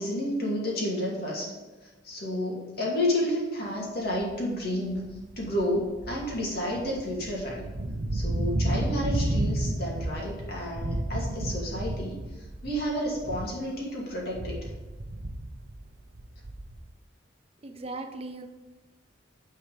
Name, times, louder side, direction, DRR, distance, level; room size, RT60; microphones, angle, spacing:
voice 1, 0.0-1.5 2.0-5.0 5.4-7.7 8.1-12.2 12.6-14.6, left 1 dB, 50° left, -3 dB, 2.4 m, -30 dB
sound 1, 4.1-4.4 4.9-13.7 14.0-16.9, right 1 dB, 55° right, 0.8 m, -32 dB
voice 2, 17.6-18.5, right 2 dB, 30° right, 6 dB, 0.5 m, -38 dB
9.5 x 4.7 x 5.1 m, 1.2 s
head